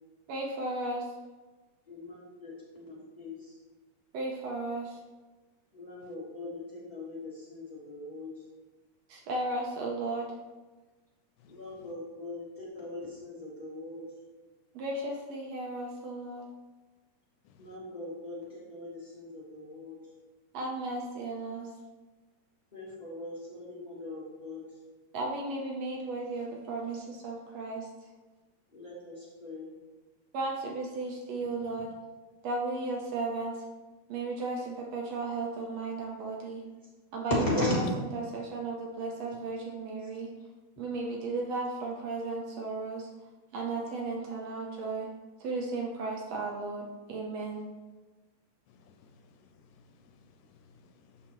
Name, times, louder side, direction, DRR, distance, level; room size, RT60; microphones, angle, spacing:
voice 1, 0.3-1.1 4.1-5.0 9.1-10.3 14.7-16.5 20.5-21.7 25.1-27.9 30.3-31.9 32.4-33.6 34.1-36.6 37.1-37.3 37.7-37.8 38.2-40.3 40.8-43.1 43.5-45.1 45.4-47.6, right 3 dB, 70° right, 1.7 m, -35 dB
voice 2, 1.9-3.6 5.7-8.4 11.5-14.0 17.6-20.0 22.7-24.8 28.7-29.7 32.3-32.4 37.3-37.8 40.0-40.1, left 2 dB, 70° left, 0.4 m, -38 dB
voice 3, 48.7-51.3, left 4 dB, 90° left, 2.2 m, -61 dB
12.0 x 4.1 x 3.0 m
omnidirectional pair, 3.6 m